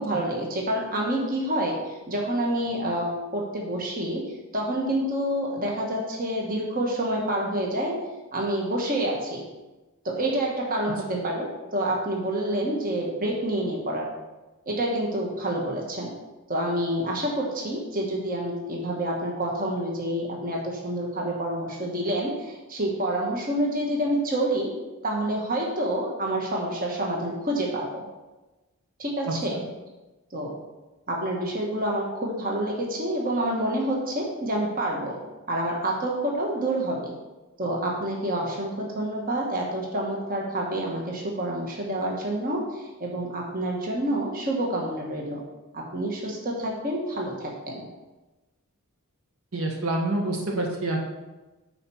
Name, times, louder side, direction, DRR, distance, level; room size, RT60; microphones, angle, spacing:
voice 1, 0.0-4.3 4.5-8.0 8.3-9.4 10.0-14.1 14.6-16.1 16.5-24.7 25.0-28.0 29.0-29.6 30.3-30.5 31.1-35.2 35.5-37.1 37.6-45.4 45.7-47.9, right 1 dB, 40° right, -2 dB, 1.3 m, -28 dB
voice 2, 49.5-51.0, right 2 dB, 65° right, 0 dB, 1.4 m, -27 dB
9.2 x 4.4 x 5.5 m, 1.1 s
head